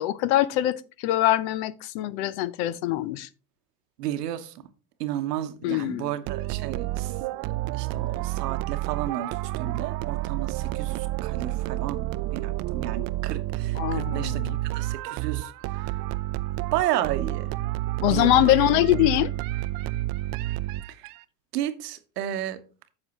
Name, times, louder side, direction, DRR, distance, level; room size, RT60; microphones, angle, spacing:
voice 1, 0.0-3.3 5.6-6.1 13.8-14.6 18.0-19.3, left 15 dB, 60° left, 0.7 m, -23 dB
voice 2, 4.0-4.5 5.0-7.1 7.4-12.1 12.3-14.5 14.7-15.9 16.7-17.5 18.0-18.4 21.5-22.6, right 12 dB, 80° right, 1.0 m, -32 dB
sound 1, 6.3-21.2, right 17 dB, 50° right, 0.5 m, -30 dB
9.6 x 6.6 x 2.9 m
hypercardioid pair, 90°, 47 cm